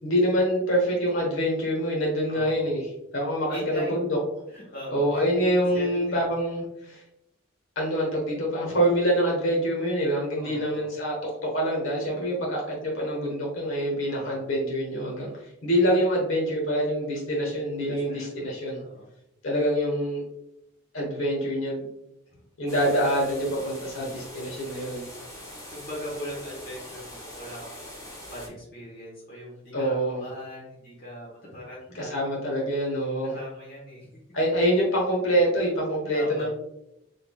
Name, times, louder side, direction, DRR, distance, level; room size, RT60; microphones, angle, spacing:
voice 1, 0.0-4.2 4.9-7.0 7.8-15.3 15.6-18.8 19.4-20.2 20.9-21.9 22.6-25.1 29.7-30.2 31.9-33.4 34.3-36.5, equal, 85° left, -2 dB, 1.1 m, -25 dB
voice 2, 2.3-2.8 3.5-3.9 4.5-6.2 10.3-10.9 14.1-14.4 17.9-19.1 23.8-24.3 25.7-32.3 33.2-34.1 36.1-36.5, equal, 50° left, -5 dB, 1.2 m, -40 dB
sound 1, 22.7-28.5, left 1 dB, 15° left, 1.1 m, -43 dB
4.0 x 3.4 x 2.2 m, 0.83 s
head